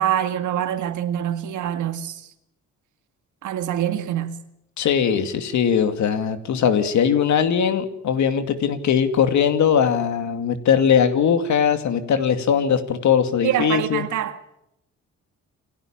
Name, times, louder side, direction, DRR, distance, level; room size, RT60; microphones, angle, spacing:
voice 1, 0.0-2.3 3.4-4.4 13.4-14.4, right 11 dB, 75° right, 2.0 m, -25 dB
voice 2, 4.8-14.1, left 7 dB, 70° left, 2.4 m, -20 dB
28.0 x 12.5 x 8.9 m
cardioid pair, 90°, 30 cm